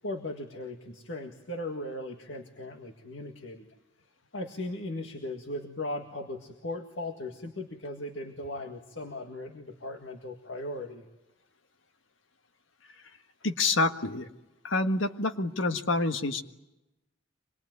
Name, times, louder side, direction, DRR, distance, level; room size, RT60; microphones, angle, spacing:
voice 1, 0.0-3.7 4.3-11.1, left 1 dB, 70° left, 4 dB, 1.9 m, -38 dB
voice 2, 13.4-14.3 14.6-16.4, left 3 dB, 85° left, 8 dB, 1.6 m, -27 dB
25.5 x 21.0 x 9.5 m, 0.96 s
head